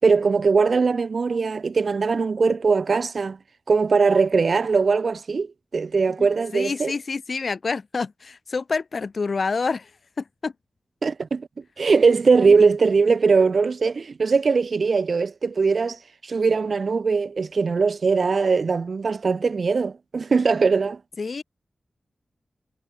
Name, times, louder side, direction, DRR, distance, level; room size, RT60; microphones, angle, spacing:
voice 1, 0.0-3.4 3.7-6.9 11.0-11.5 11.8-21.0, right 4 dB, 65° right, 6.7 m, -20 dB
voice 2, 6.5-9.9 10.2-10.5 21.2-21.4, left 4 dB, 60° left, 7.9 m, -27 dB
wide cardioid pair, 70°, 0 cm